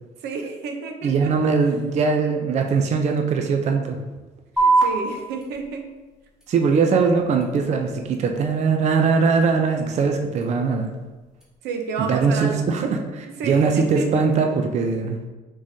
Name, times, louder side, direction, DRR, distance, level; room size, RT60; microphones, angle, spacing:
voice 1, 0.2-1.5 4.6-5.8 11.6-12.9 13.2-14.3, right 4 dB, 80° right, 4 dB, 0.7 m, -31 dB
voice 2, 1.0-4.0 6.5-10.9 12.0-15.2, right 5 dB, 40° right, 4 dB, 0.5 m, -21 dB
sound 1, 4.6-11.6, right 3 dB, 5° right, 1.2 m, -28 dB
4.8 x 3.7 x 2.7 m, 1.2 s
cardioid pair, 110°, 17 cm